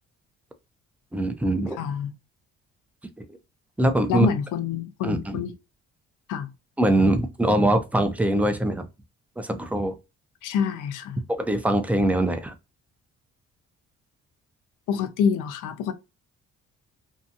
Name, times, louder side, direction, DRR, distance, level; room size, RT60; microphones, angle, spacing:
voice 1, 1.1-1.8 3.2-3.3 3.8-4.3 5.0-5.4 6.8-8.9 9.4-9.9 11.3-12.5, right 1 dB, 5° right, 0.5 m, -23 dB
voice 2, 1.8-2.1 4.1-5.5 6.3-6.5 10.4-11.2 14.9-15.9, left 7 dB, 85° left, 0.6 m, -26 dB
2.7 x 2.3 x 2.6 m
cardioid pair, 90°, 30 cm